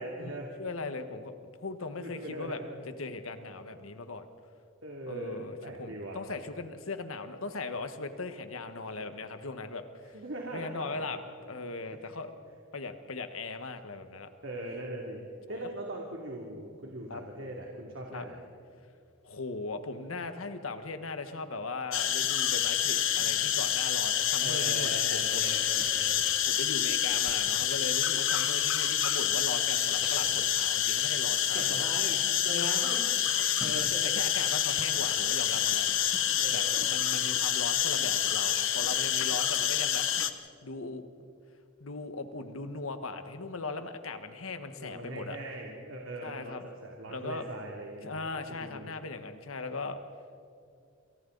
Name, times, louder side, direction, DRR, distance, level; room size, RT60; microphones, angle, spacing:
voice 1, 0.0-0.5 2.0-2.8 4.8-6.2 10.1-11.3 11.9-12.1 14.4-15.2 15.5-18.4 24.4-26.2 31.5-33.0 33.6-34.1 36.4-36.9 44.8-48.1 48.5-48.9, right 1 dB, 70° right, -1 dB, 2.8 m, -40 dB
voice 2, 0.6-1.3 1.6-2.6 2.9-4.3 5.1-10.2 10.5-12.3 12.7-14.3 17.1-17.2 18.1-18.3 19.2-25.5 26.4-31.9 32.5-32.8 33.6-33.9 34.1-35.9 36.5-40.1 40.6-41.1 41.8-45.4 46.2-46.6 47.1-47.4 48.0-50.0, left 3 dB, 85° left, 8 dB, 1.5 m, -38 dB
sound 1, 21.9-40.3, left 11 dB, 65° left, 1.1 m, -28 dB
Packing tape duct tape, 23.2-30.7 31.0-32.0 32.5-32.6 32.9-34.1 34.4-35.2 35.6-36.0, equal, 5° right, 7.4 m, -50 dB
29.0 x 27.5 x 4.0 m, 2.4 s
head